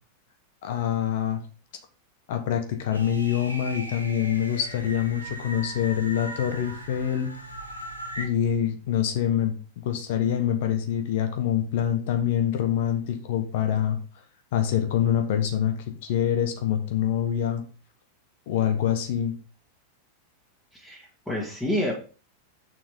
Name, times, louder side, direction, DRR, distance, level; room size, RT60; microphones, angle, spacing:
voice 1, 0.6-1.4 2.3-7.3 8.2-14.0 14.5-17.6 18.5-19.3, left 10 dB, 50° left, 7 dB, 1.1 m, -25 dB
sound 1, 2.9-8.3, right 1 dB, 90° left, 1.4 m, -38 dB
voice 2, 20.7-21.9, left 1 dB, 5° left, -5 dB, 1.9 m, -29 dB
6.7 x 6.0 x 3.6 m, 0.36 s
figure-of-eight pair, 90°, 0 cm